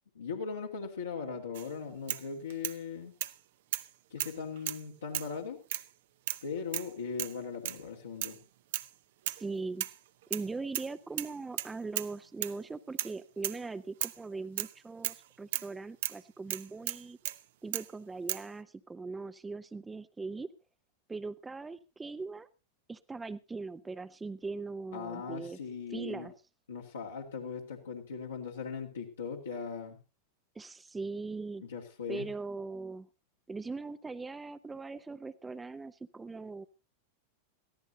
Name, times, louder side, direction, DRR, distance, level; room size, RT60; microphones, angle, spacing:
voice 1, 0.1-3.1 4.1-5.6 6.4-8.4 24.9-26.3 26.7-30.0 31.6-32.3, left 5 dB, 70° left, -2 dB, 2.3 m, -39 dB
sound 1, 1.5-1.7 2.1-2.8 3.2-3.4 3.7-3.9 4.2-4.8 5.1-5.4 5.7-5.9 6.3-6.5 6.7-6.9 7.2-7.4 7.7-7.8 8.2-8.4 8.7-8.9 9.3-9.5 9.8-10.5 10.7-10.9 11.2-12.1 12.4-12.6 13.0-13.2 13.4-13.6 14.0-14.2 14.6-14.7 15.0-15.2 15.5-15.7 16.0-16.2 16.5-17.4 17.7-17.9 18.3-18.5, right 13 dB, 55° right, 0.7 m, -35 dB
voice 2, 9.4-9.9 10.3-17.2 17.6-20.5 21.1-22.5 22.9-25.6 25.9-26.3 30.5-31.6 32.1-33.1 33.5-36.7, right 3 dB, 10° right, 12 dB, 0.8 m, -40 dB
22.0 x 15.0 x 2.8 m, 0.31 s
figure-of-eight pair, 90°, 0 cm